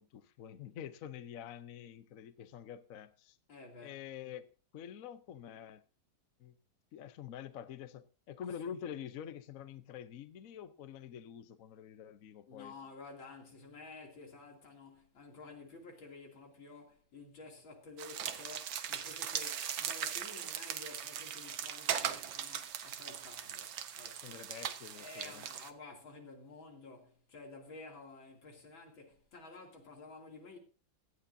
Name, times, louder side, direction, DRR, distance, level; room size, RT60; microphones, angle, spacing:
voice 1, 0.0-3.4 3.8-4.5 4.7-5.8 6.4-6.5 6.9-12.7 24.2-25.5, left 9 dB, 55° left, 1.0 m, -47 dB
voice 2, 3.5-4.0 12.5-24.5 25.0-30.6, left 3 dB, 90° left, 3.5 m, -52 dB
sound 1, 18.0-25.7, right 9 dB, 85° right, 1.7 m, -39 dB
17.5 x 12.5 x 2.7 m
omnidirectional pair, 2.1 m